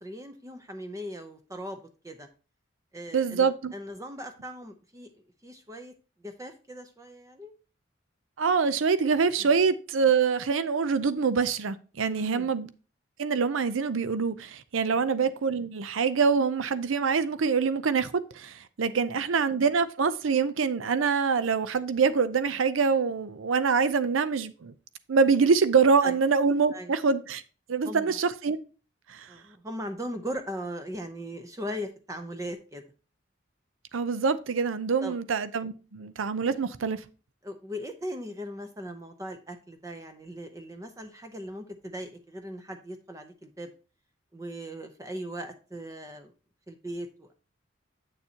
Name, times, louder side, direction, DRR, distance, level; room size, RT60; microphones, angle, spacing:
voice 1, 0.0-2.3 2.9-5.1 5.4-5.9 6.2-7.5 9.4-9.5 12.1-12.5 18.9-19.2 26.0-26.1 26.7-26.9 27.8-28.2 29.3-32.8 35.0-35.2 37.4-43.7 44.3-46.3 46.7-47.3, equal, 15° right, 0.6 m, -39 dB
voice 2, 3.1-3.7 8.4-12.7 13.2-24.7 25.1-27.4 27.7-28.6 29.1-29.3 33.9-37.0, right 5 dB, 85° right, 0.5 m, -25 dB
8.2 x 6.9 x 2.8 m
head